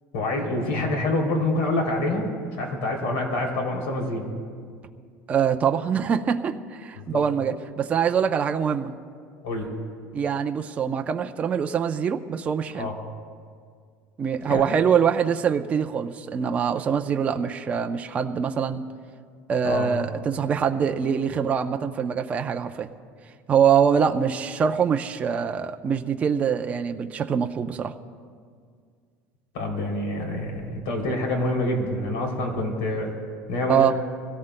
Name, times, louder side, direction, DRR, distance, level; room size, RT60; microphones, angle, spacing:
voice 1, 0.1-4.3 7.1-7.2 9.4-9.7 12.8-13.0 14.5-14.7 19.6-19.9 29.5-33.1 33.5-33.9, left 2 dB, 85° left, 1 dB, 3.0 m, -26 dB
voice 2, 5.3-8.9 10.1-12.9 14.2-18.8 19.5-22.9 23.5-27.9 33.7-33.9, right 7 dB, 25° right, 5 dB, 0.5 m, -24 dB
25.5 x 17.0 x 2.2 m, 2.1 s
cardioid pair, 160°, 6 cm